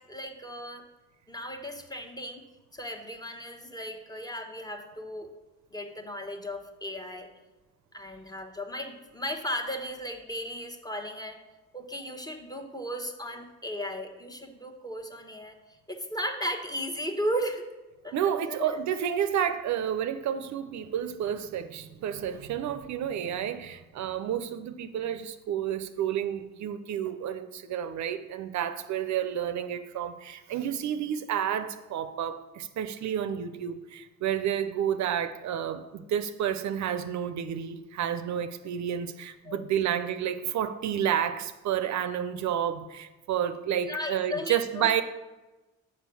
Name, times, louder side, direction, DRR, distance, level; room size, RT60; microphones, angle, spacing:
voice 1, 0.1-0.8 1.3-2.4 2.7-5.3 5.7-7.3 7.9-11.4 11.7-15.5 15.9-17.7 18.0-18.3 18.6-18.8 39.4-39.7 43.9-44.9, equal, 15° left, 1.1 m, -35 dB
voice 2, 18.1-45.0, right 9 dB, 65° right, 0.6 m, -30 dB
6.3 x 5.2 x 6.8 m
cardioid pair, 90°, 30 cm